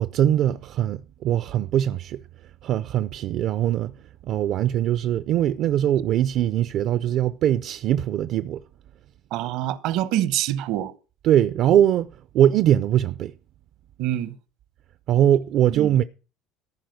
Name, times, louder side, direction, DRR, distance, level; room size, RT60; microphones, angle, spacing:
voice 1, 0.0-2.2 2.6-8.6 11.2-13.3 15.1-16.0, right 11 dB, 55° right, 0.5 m, -21 dB
voice 2, 9.3-10.9 14.0-14.4 15.7-15.9, right 13 dB, 75° right, 1.0 m, -25 dB
14.5 x 4.9 x 7.9 m
cardioid pair, 140°, 0 cm